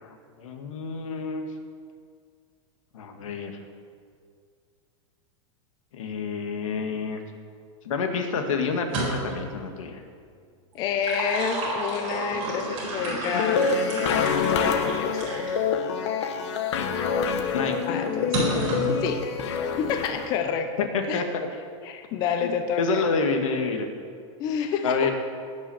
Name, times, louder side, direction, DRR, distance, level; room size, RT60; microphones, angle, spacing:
voice 1, 0.0-1.5 2.9-3.5 5.9-7.2 7.8-10.0 17.5-17.8 20.9-21.4 22.4-22.5 22.8-23.9 24.8-25.1, left 4 dB, 90° left, 5 dB, 1.9 m, -28 dB
sound 1, 8.8-9.5 10.7-15.6 16.2-16.3 18.3-19.0, right 2 dB, 35° right, 4.2 m, -31 dB
voice 2, 10.7-13.7 14.0-14.1 14.4-15.2 17.7-18.5 19.0-19.3 19.8-21.2 21.8-23.1 24.4-25.1, left 7 dB, 25° left, 6 dB, 0.7 m, -29 dB
sound 2, 13.3-20.3, left 6 dB, 60° left, 1.2 m, -26 dB
17.5 x 6.3 x 7.1 m, 2.2 s
supercardioid pair, 175°, 16 cm